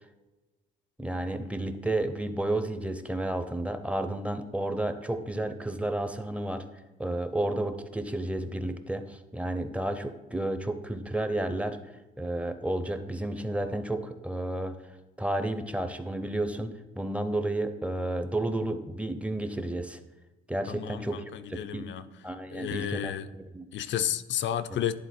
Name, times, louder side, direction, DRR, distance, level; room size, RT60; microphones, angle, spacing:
voice 1, 1.0-6.7 7.0-11.8 12.2-14.9 15.2-16.7 17.0-20.0 20.5-21.9 22.2-23.1 23.5-23.6, right 1 dB, 5° right, 9 dB, 0.6 m, -31 dB
voice 2, 20.7-22.1 22.5-23.3 23.7-24.9, left 10 dB, 70° left, 12 dB, 0.5 m, -32 dB
10.5 x 3.8 x 4.3 m, 1.1 s
cardioid pair, 90°, 20 cm